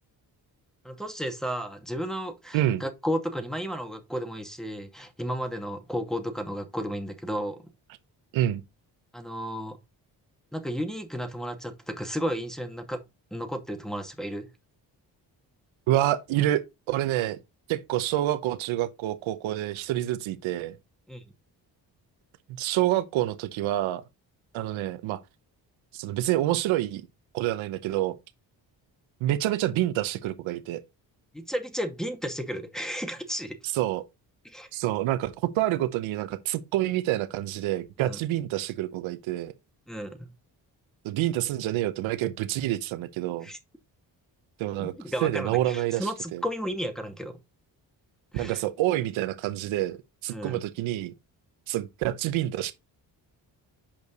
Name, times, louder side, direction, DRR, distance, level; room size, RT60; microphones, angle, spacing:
voice 1, 0.8-7.6 9.1-9.8 10.5-13.0 13.3-14.5 21.1-21.2 31.3-33.6 34.4-34.7 38.0-38.2 39.9-40.3 43.4-43.6 44.8-47.4 48.3-48.6 50.3-50.6, equal, ahead, 2.3 m, -33 dB
voice 2, 15.9-17.4 17.7-20.8 22.6-24.0 24.5-25.2 25.9-27.0 27.3-28.2 29.2-30.8 33.7-34.0 34.7-39.5 41.0-43.5 44.6-44.9 45.2-46.4 48.3-50.0 50.2-51.1 51.7-52.7, right 14 dB, 90° right, 0.9 m, -27 dB
8.6 x 5.3 x 4.0 m
supercardioid pair, 50°, 46 cm